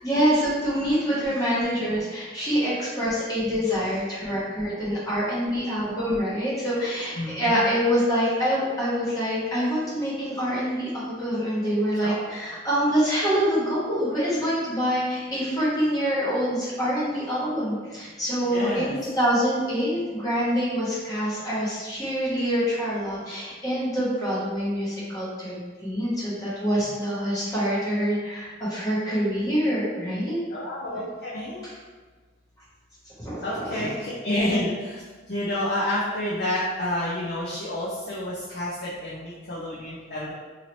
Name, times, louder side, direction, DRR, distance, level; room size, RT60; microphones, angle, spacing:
voice 1, 0.0-30.4 31.6-31.7 33.2-33.8, equal, 20° left, -10 dB, 1.0 m, -26 dB
voice 2, 7.2-7.6 12.0-12.3 18.5-18.9 27.0-27.1 30.5-31.7 33.4-40.3, left 1 dB, 55° left, -8 dB, 0.5 m, -29 dB
2.8 x 2.7 x 3.0 m, 1.4 s
head